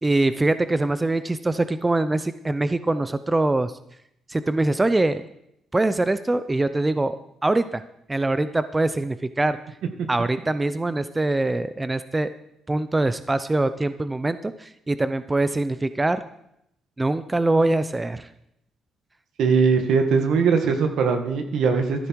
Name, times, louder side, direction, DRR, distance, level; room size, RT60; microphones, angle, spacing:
voice 1, 0.0-3.7 4.3-5.2 5.7-7.2 7.4-7.8 8.1-9.6 10.1-12.3 12.7-16.2 17.0-18.3, right 2 dB, 15° right, 12 dB, 0.6 m, -23 dB
voice 2, 19.4-22.1, right 5 dB, 75° right, 6 dB, 1.8 m, -20 dB
14.0 x 12.0 x 4.7 m, 0.78 s
cardioid pair, 90°, 0 cm